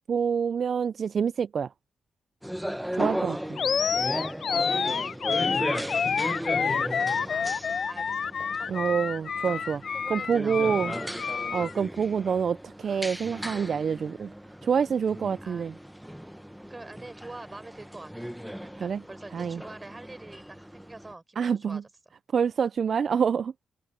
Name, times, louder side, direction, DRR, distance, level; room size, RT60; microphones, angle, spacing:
voice 1, 0.1-1.7 2.9-3.4 8.7-9.8 10.1-10.9 11.5-14.3 14.6-15.7 18.8-19.0 19.3-19.6 21.4-21.8 22.3-23.5, right 6 dB, 60° right, 0.4 m, -27 dB
sound 1, 2.4-21.1, equal, 5° right, 1.1 m, -36 dB
voice 2, 2.9-4.3 4.6-7.4 7.9-9.0 9.9-11.1 15.4-15.7 16.7-21.8, right 2 dB, 25° right, 5.0 m, -46 dB
Animal, 3.6-11.7, left 6 dB, 60° left, 0.3 m, -28 dB
open air
cardioid pair, 65°, 0 cm